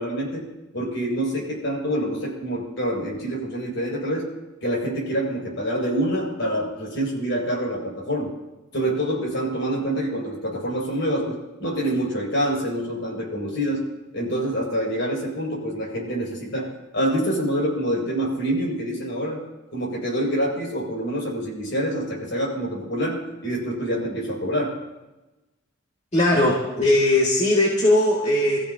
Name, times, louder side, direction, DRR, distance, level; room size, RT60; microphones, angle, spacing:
voice 1, 0.0-4.3 4.6-8.3 8.7-13.9 14.1-19.4 19.7-24.8, equal, 65° left, -4 dB, 6.9 m, -26 dB
voice 2, 26.1-28.6, left 1 dB, 35° left, -5 dB, 2.4 m, -19 dB
27.5 x 15.0 x 3.0 m, 1.1 s
head